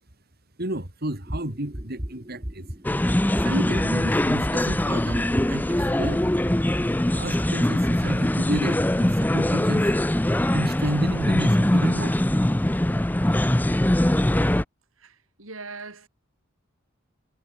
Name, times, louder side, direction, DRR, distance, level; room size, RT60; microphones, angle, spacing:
voice 1, 0.6-2.7 3.4-6.2 7.1-9.9 10.5-12.2, right 1 dB, 50° right, 3.3 m, -31 dB
sound 1, 1.3-10.2 10.6-10.9 11.3-11.6, equal, 25° right, 2.6 m, -36 dB
sound 2, 2.8-14.6, left 1 dB, 10° left, 0.5 m, -22 dB
voice 2, 15.0-16.1, right 4 dB, 80° right, 5.2 m, -40 dB
head